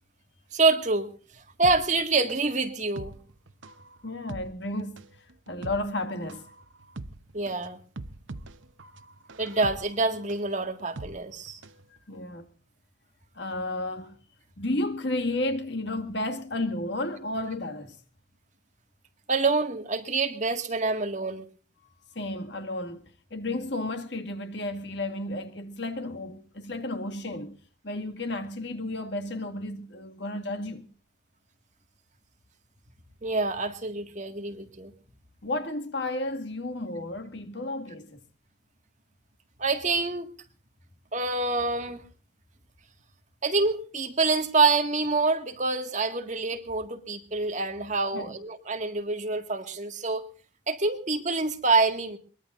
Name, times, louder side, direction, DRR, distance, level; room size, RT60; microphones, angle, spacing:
voice 1, 0.5-1.1 1.6-3.1 7.3-7.8 9.4-11.6 19.3-21.4 33.2-34.9 39.6-40.3 41.1-42.0 43.4-50.3 50.7-52.2, right 3 dB, 35° right, 1.9 m, -26 dB
sound 1, 1.6-11.8 12.1-12.2, right 2 dB, 75° right, 0.9 m, -43 dB
voice 2, 4.0-6.4 12.1-12.5 13.4-14.2 14.6-18.0 22.1-27.6 27.8-30.9 35.4-38.2 48.1-48.3, left 2 dB, 60° left, 2.1 m, -32 dB
23.0 x 22.0 x 2.6 m
head